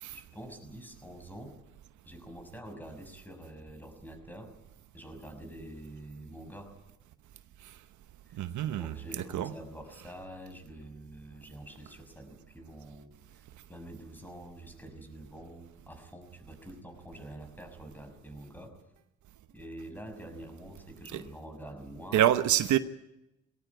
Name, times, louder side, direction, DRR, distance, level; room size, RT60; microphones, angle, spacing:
voice 1, 0.1-1.6 2.1-4.5 4.9-6.8 8.3-13.4 13.7-18.8 19.5-22.3, right 1 dB, 5° left, 6.1 m, -46 dB
voice 2, 8.3-9.0 9.3-9.5 21.1-21.2 22.1-22.8, right 12 dB, 75° right, 1.0 m, -26 dB
21.5 x 17.5 x 9.4 m
cardioid pair, 90°, 30 cm